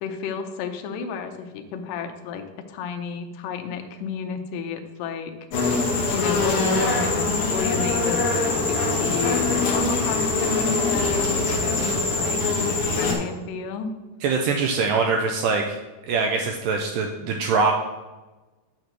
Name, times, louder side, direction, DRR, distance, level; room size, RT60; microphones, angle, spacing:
voice 1, 0.0-5.3 6.1-11.9 12.2-13.9, left 6 dB, 75° left, 5 dB, 2.2 m, -32 dB
sound 1, 5.5-13.1, left 3 dB, 60° left, 1.5 m, -23 dB
voice 2, 14.2-15.8 16.1-17.7, right 4 dB, 80° right, 2 dB, 2.0 m, -23 dB
9.0 x 3.1 x 6.5 m, 1.2 s
omnidirectional pair, 4.3 m